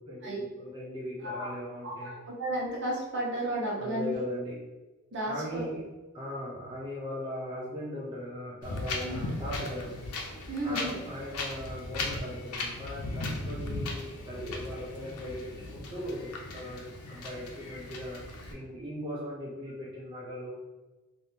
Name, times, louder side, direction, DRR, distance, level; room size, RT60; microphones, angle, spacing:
voice 1, 0.0-2.1 3.8-4.7 5.3-5.9 6.1-10.1 10.6-20.6, equal, 20° right, -6 dB, 0.5 m, -39 dB
voice 2, 1.2-1.5 1.8-4.2 5.1-5.6 9.0-9.2 10.5-11.0, right 1 dB, 55° right, -4 dB, 1.0 m, -33 dB
Wind, 8.6-18.5, left 2 dB, 85° left, 0.6 m, -37 dB
2.7 x 2.6 x 3.5 m, 1.2 s
head